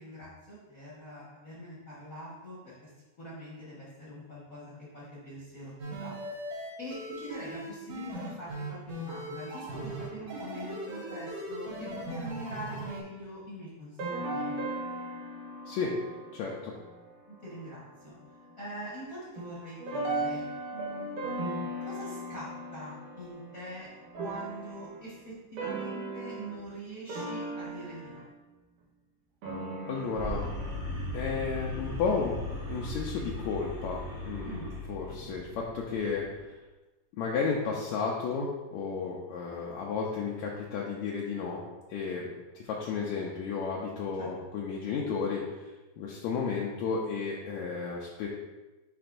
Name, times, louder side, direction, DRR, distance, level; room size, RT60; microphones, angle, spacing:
voice 1, 0.0-2.7 3.2-6.2 6.5-14.5 17.3-18.1 18.6-20.4 20.7-21.5 21.8-23.9 24.2-28.2 34.4-34.7 44.2-44.3, equal, 40° left, -7 dB, 1.2 m, -43 dB
sound 1, 5.8-13.0, right 1 dB, 55° right, 2.5 m, -39 dB
sound 2, 12.7-13.0 14.0-17.8 18.0-18.8 19.4-25.2 25.6-26.6 27.1-28.3 29.4-31.0, right 2 dB, 80° right, 2.6 m, -37 dB
voice 2, 15.7-16.0 16.3-16.7 29.9-30.4 31.1-32.4 32.7-36.3 37.2-41.6 41.9-42.3 42.6-45.7 46.0-48.3, left 5 dB, 75° left, -3 dB, 1.8 m, -33 dB
sound 3, 30.1-36.4, left 1 dB, 15° right, 1.3 m, -38 dB
10.5 x 3.8 x 2.6 m, 1.1 s
omnidirectional pair, 3.6 m